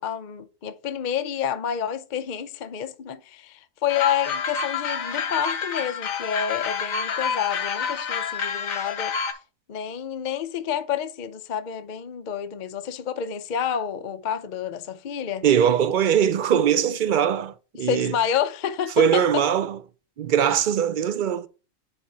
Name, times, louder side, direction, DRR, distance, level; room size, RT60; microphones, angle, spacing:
voice 1, 0.0-9.1 9.7-15.4 17.7-19.4, left 8 dB, 50° left, 0.6 m, -29 dB
sound 1, 3.9-9.3, left 6 dB, 90° left, 1.3 m, -28 dB
voice 2, 15.4-18.1 19.0-19.8 20.2-21.5, right 8 dB, 65° right, 0.5 m, -21 dB
9.8 x 3.6 x 4.2 m
omnidirectional pair, 1.4 m